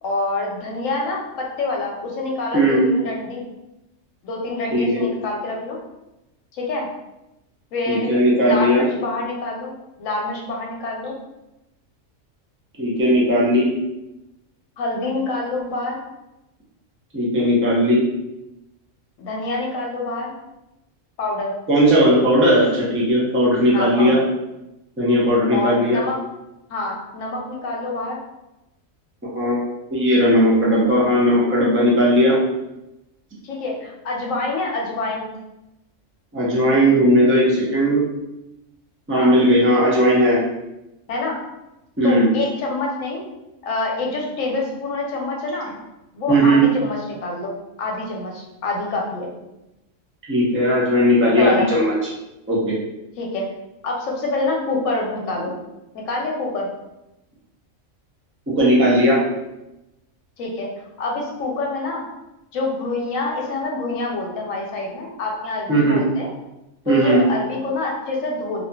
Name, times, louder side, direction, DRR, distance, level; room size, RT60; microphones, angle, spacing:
voice 1, 0.0-3.4 4.2-5.8 6.5-6.9 7.7-11.2 14.8-16.0 19.2-20.4 21.2-21.5 23.7-24.2 25.5-26.2 26.7-28.2 33.4-35.3 39.1-39.3 41.1-41.4 42.0-43.2 43.6-45.7 46.1-47.5 47.8-49.3 51.2-51.7 53.2-53.4 53.8-55.6 55.9-56.7 60.4-60.7 61.0-62.0 62.5-66.3 66.9-68.6, left 2 dB, 85° left, -1 dB, 1.0 m, -26 dB
voice 2, 2.5-2.9 4.7-5.1 7.9-8.8 12.8-13.7 17.1-18.0 21.7-24.2 25.0-26.0 29.3-29.6 29.9-32.4 36.3-38.0 39.1-40.4 42.0-42.3 46.3-46.6 50.3-51.9 52.5-52.8 58.6-59.2 65.7-66.0 66.9-67.2, equal, 20° right, -5 dB, 0.3 m, -17 dB
2.6 x 2.5 x 2.2 m, 0.94 s
omnidirectional pair, 1.3 m